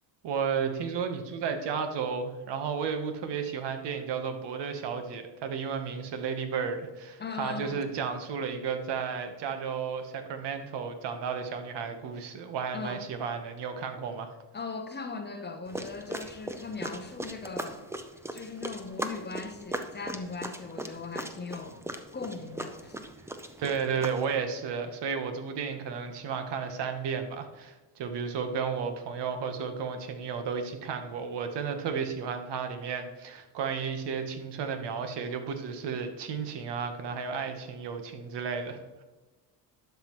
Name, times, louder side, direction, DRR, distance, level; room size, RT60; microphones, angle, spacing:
voice 1, 0.2-14.3 23.6-39.0, right 6 dB, 60° right, 1.1 m, -33 dB
voice 2, 7.2-7.9 12.7-13.1 14.5-17.9 18.3-21.8 22.1-23.0, left 4 dB, 20° left, 0.7 m, -39 dB
sound 1, 15.7-24.4, right 1 dB, 5° right, 0.5 m, -39 dB
11.5 x 5.7 x 3.0 m
cardioid pair, 110°, 46 cm